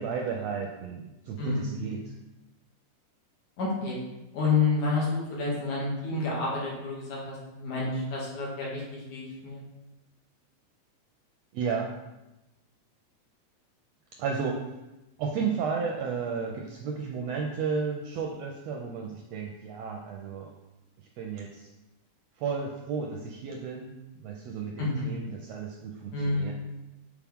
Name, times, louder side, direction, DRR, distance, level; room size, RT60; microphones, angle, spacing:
voice 1, 0.0-2.1 11.5-11.9 14.2-14.8 15.2-20.5 21.2-21.7 22.4-23.9 24.2-26.5, right 5 dB, 80° right, 1 dB, 1.5 m, -33 dB
voice 2, 1.4-1.8 3.6-4.0 4.3-9.6 24.8-24.9 26.1-26.5, left 3 dB, 70° left, -5 dB, 3.0 m, -29 dB
7.3 x 4.6 x 3.5 m, 0.99 s
omnidirectional pair, 3.5 m